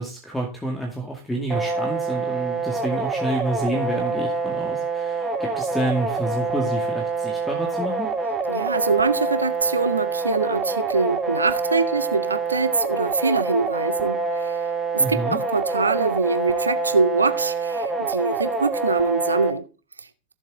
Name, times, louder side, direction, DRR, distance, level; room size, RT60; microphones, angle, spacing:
voice 1, 0.0-8.1 15.0-15.4, right 1 dB, 5° left, 2.3 m, -29 dB
sound 1, 1.5-19.5, right 3 dB, 15° right, 1.5 m, -26 dB
voice 2, 8.5-14.6 14.9-19.7 20.0-20.1, right 4 dB, 75° right, 0.8 m, -23 dB
14.5 x 7.3 x 3.8 m
figure-of-eight pair, 90°, 0 cm